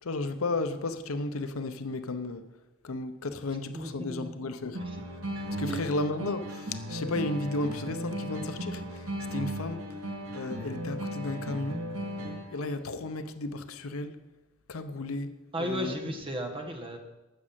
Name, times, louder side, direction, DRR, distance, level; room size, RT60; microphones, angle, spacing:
voice 1, 0.0-2.4 2.8-4.8 5.6-9.9 10.3-11.9 12.5-14.2 14.7-15.9, left 2 dB, 75° left, 0.8 m, -33 dB
voice 2, 3.7-4.3 4.8-5.0 5.7-5.8 15.5-17.0, equal, 25° right, 1.5 m, -34 dB
sound 1, 4.7-12.7, equal, 75° right, 1.9 m, -36 dB
13.0 x 6.3 x 7.4 m
head